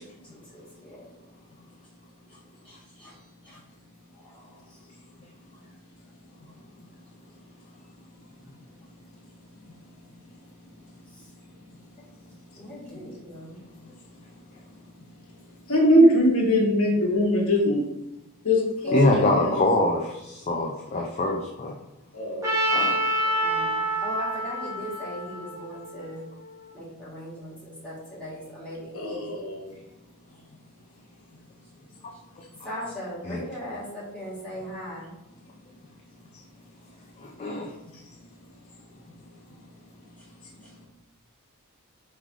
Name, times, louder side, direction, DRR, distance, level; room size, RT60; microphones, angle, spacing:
voice 1, 0.5-1.0 2.6-3.6 4.1-4.5 12.6-13.6 18.8-19.6 23.4-26.2 26.7-29.3 32.6-35.1, equal, 5° left, -8 dB, 1.7 m, -39 dB
voice 2, 15.7-17.8 18.4-18.6 18.9-19.6 22.1-22.5 28.9-29.6, equal, 65° left, -1 dB, 1.1 m, -21 dB
voice 3, 18.9-21.8 22.7-23.0 32.4-32.7 33.2-33.5 37.2-37.7, left 2 dB, 30° left, 0 dB, 0.4 m, -25 dB
Trumpet, 22.4-26.5, right 1 dB, 15° right, 1.0 m, -27 dB
3.7 x 3.2 x 4.6 m, 0.91 s
head